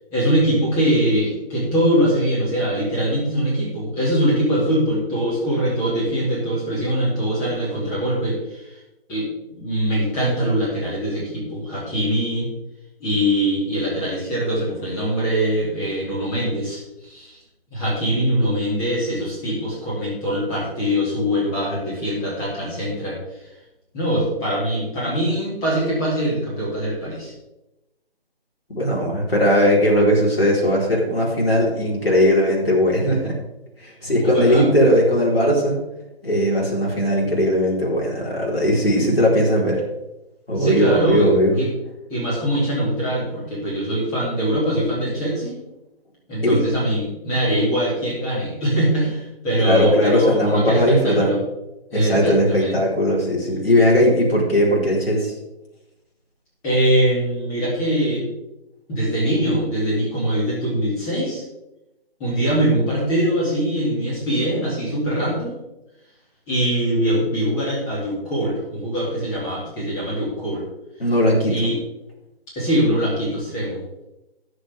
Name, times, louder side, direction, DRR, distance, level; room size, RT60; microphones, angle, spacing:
voice 1, 0.1-8.6 9.1-12.5 13.0-17.4 17.7-23.2 23.9-27.3 34.2-34.6 40.6-41.7 42.1-45.6 46.3-51.4 51.9-52.8 56.6-58.3 58.9-61.4 62.2-65.5 66.5-70.7 71.5-71.8 72.6-73.8, equal, 10° left, -6 dB, 2.5 m, -22 dB
voice 2, 28.7-33.4 33.8-35.8 36.2-39.8 40.5-41.6 46.4-46.6 49.6-51.3 51.9-55.3 71.0-71.5, equal, 70° left, -4 dB, 4.2 m, -18 dB
17.5 x 6.5 x 3.6 m, 0.95 s
figure-of-eight pair, 150°, 31 cm